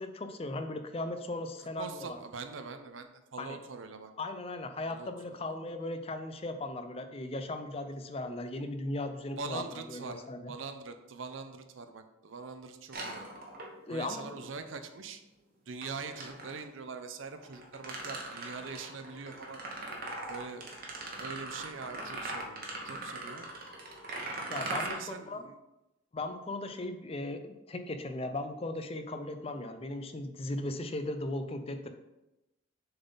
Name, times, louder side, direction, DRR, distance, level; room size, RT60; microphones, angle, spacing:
voice 1, 0.0-2.2 3.4-3.6 4.2-10.5 13.9-14.3 24.5-25.4 26.1-31.9, left 2 dB, 30° left, 8 dB, 0.5 m, -37 dB
voice 2, 1.6-4.1 4.8-5.4 9.3-13.3 13.9-15.2 15.7-19.6 20.3-23.5 24.5-25.6, right 4 dB, 80° right, 8 dB, 0.6 m, -43 dB
sound 1, 12.9-14.0 15.8-16.6 17.4-24.9, right 2 dB, 50° right, 1.1 m, -40 dB
6.6 x 4.0 x 3.9 m, 0.94 s
head